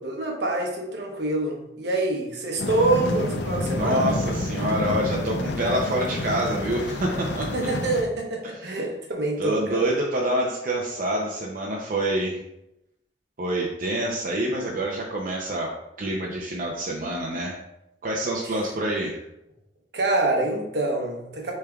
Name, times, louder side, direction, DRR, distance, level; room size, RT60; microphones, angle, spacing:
voice 1, 0.0-4.1 7.5-9.8 18.4-18.6 19.9-21.5, right 2 dB, 70° right, 1 dB, 0.9 m, -26 dB
sound 1, 2.6-8.0, left 1 dB, 75° left, 0.5 m, -28 dB
voice 2, 3.7-7.5 8.6-8.8 9.4-12.4 13.4-15.7 16.0-17.6 18.0-19.2, right 1 dB, 50° right, -2 dB, 0.5 m, -27 dB
6.7 x 3.3 x 2.3 m, 0.87 s
head